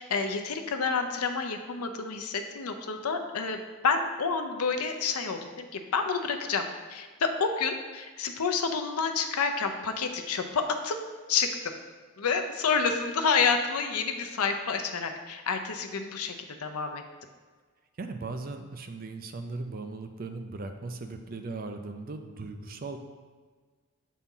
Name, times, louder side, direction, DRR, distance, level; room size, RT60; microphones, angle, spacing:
voice 1, 0.0-3.6 3.8-6.6 6.9-11.0 11.3-11.7 12.2-16.3 16.6-17.0, left 5 dB, 90° left, 6 dB, 0.6 m, -29 dB
voice 2, 18.0-23.0, right 3 dB, 40° right, 6 dB, 0.4 m, -38 dB
7.1 x 4.2 x 3.8 m, 1.4 s
head